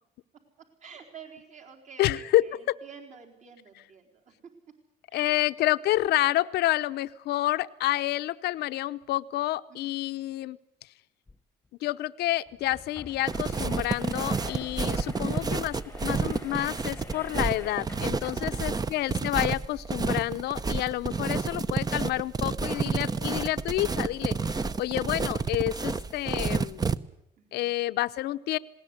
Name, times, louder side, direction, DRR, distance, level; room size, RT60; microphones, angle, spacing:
voice 1, 0.6-4.3 5.1-5.4 9.7-10.0 18.3-19.2 27.4-27.7, right 6 dB, 45° right, 2 dB, 4.2 m, -50 dB
voice 2, 2.0-2.8 5.1-10.6 11.8-26.8 27.5-28.6, left 15 dB, 75° left, 13 dB, 0.8 m, -29 dB
sound 1, 11.3-11.4 11.6-11.7 12.5-18.9, left 3 dB, 10° left, 1.2 m, -46 dB
sound 2, 13.3-27.0, right 4 dB, 25° right, 0.8 m, -30 dB
20.0 x 18.5 x 9.6 m, 0.81 s
cardioid pair, 110°, 17 cm